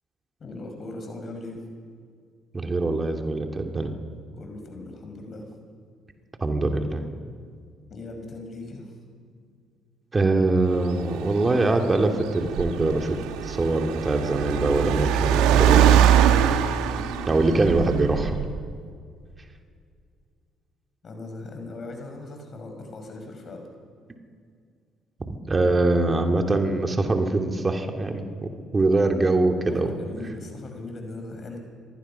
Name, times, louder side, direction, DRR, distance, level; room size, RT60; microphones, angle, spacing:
voice 1, 0.4-1.6 4.3-5.5 7.9-8.9 16.8-17.4 21.0-23.7 29.7-31.6, left 2 dB, 45° left, 4 dB, 5.7 m, -39 dB
voice 2, 2.5-3.9 6.4-7.0 10.1-13.2 13.4-16.0 17.3-18.4 25.3-29.9, right 2 dB, 30° right, 4 dB, 2.7 m, -23 dB
Car, 10.7-18.7, right 9 dB, 70° right, 1.4 m, -23 dB
25.5 x 19.5 x 5.8 m, 2.1 s
hypercardioid pair, 50°, 0 cm